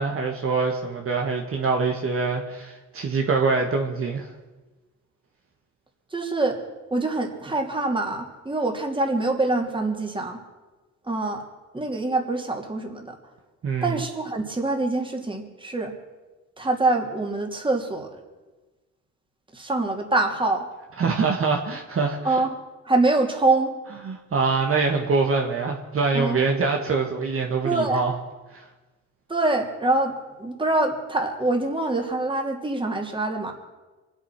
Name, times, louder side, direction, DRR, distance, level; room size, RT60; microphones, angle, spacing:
voice 1, 0.0-4.3 13.6-14.0 21.0-22.2 24.0-28.1 28.5-28.6, right 4 dB, 45° right, 1 dB, 1.7 m, -24 dB
voice 2, 6.1-6.6 6.9-10.4 11.1-11.4 11.7-13.1 13.8-15.9 16.6-18.1 19.5-20.6 22.2-22.5 22.8-23.7 26.1-26.4 27.6-28.0 29.3-33.5, right 2 dB, 15° right, 2 dB, 2.8 m, -25 dB
24.5 x 8.3 x 6.0 m, 1.2 s
cardioid pair, 90°, 30 cm